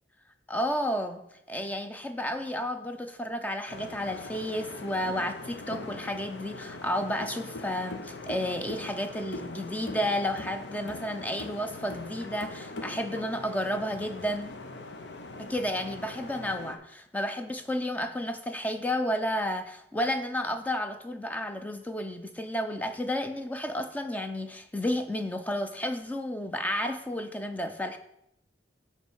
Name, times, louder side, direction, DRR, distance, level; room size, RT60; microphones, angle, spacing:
voice 1, 0.5-1.2 1.5-14.5 15.4-28.0, left 1 dB, 10° left, 7 dB, 0.4 m, -32 dB
sound 1, 3.7-16.8, left 2 dB, 75° left, 0.7 m, -41 dB
9.2 x 3.1 x 5.5 m, 0.79 s
head